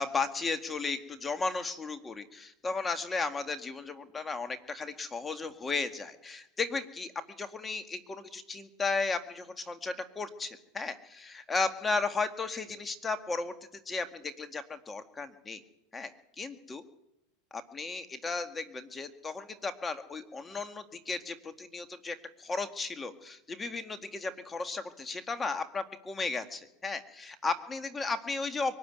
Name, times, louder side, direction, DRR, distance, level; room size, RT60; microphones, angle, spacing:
voice 1, 0.0-7.1 7.4-13.5 13.9-15.6 15.9-16.1 16.4-16.8 17.5-28.7, left 4 dB, 15° left, 9 dB, 1.9 m, -35 dB
23.0 x 13.5 x 9.4 m, 0.86 s
supercardioid pair, 120°, 0 cm